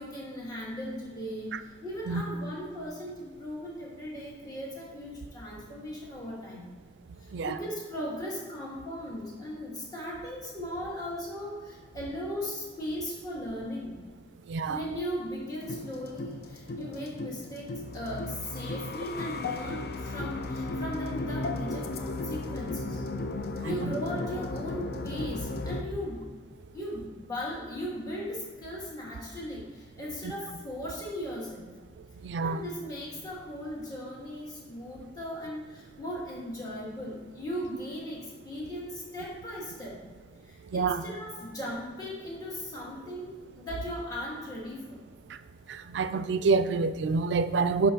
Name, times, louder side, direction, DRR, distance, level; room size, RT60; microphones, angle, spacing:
voice 1, 0.0-6.7 7.2-13.9 14.6-23.0 23.6-26.2 26.7-31.7 32.4-40.0 40.4-45.0, equal, 20° left, 1.3 m, -38 dB
voice 2, 14.5-14.8 23.6-23.9 30.2-30.3 32.2-32.6 40.7-41.0 45.7-47.9, right 4 dB, 85° right, 0.3 m, -27 dB
sound 1, 15.6-25.8, left 2 dB, 60° left, 0.4 m, -35 dB
7.4 x 5.9 x 2.8 m
head